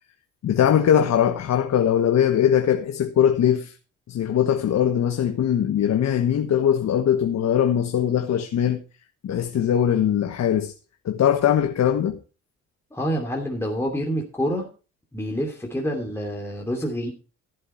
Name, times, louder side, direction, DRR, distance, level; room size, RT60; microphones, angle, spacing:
voice 1, 0.4-3.7 4.1-8.8 9.2-10.7 11.0-12.2, left 9 dB, 60° left, 1.3 m, -21 dB
voice 2, 12.9-14.7 15.1-17.1, equal, 10° left, 2.8 m, -27 dB
14.5 x 7.9 x 4.5 m
cardioid pair, 90°, 30 cm